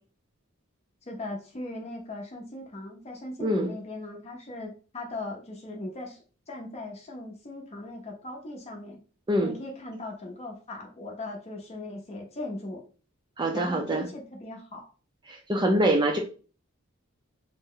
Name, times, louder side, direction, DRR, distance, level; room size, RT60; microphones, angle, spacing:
voice 1, 1.0-6.2 6.5-9.0 9.4-12.8 13.5-14.9, left 2 dB, 30° left, 0 dB, 0.6 m, -39 dB
voice 2, 3.4-3.7 9.3-9.5 13.4-14.1 15.3-16.2, right 1 dB, 20° right, 2 dB, 0.4 m, -24 dB
2.7 x 2.0 x 3.7 m, 0.37 s
head